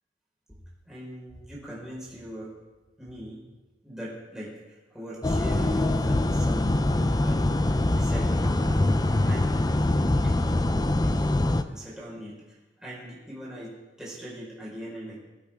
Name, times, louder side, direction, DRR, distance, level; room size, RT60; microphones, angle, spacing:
voice 1, 0.8-2.5 3.0-3.5 3.8-8.8 9.3-9.7 10.2-10.4 10.9-15.2, equal, 5° right, -7 dB, 5.1 m, -41 dB
sound 1, 5.2-11.6, left 1 dB, 20° left, 0.5 m, -23 dB
22.0 x 8.7 x 3.7 m, 1.1 s
head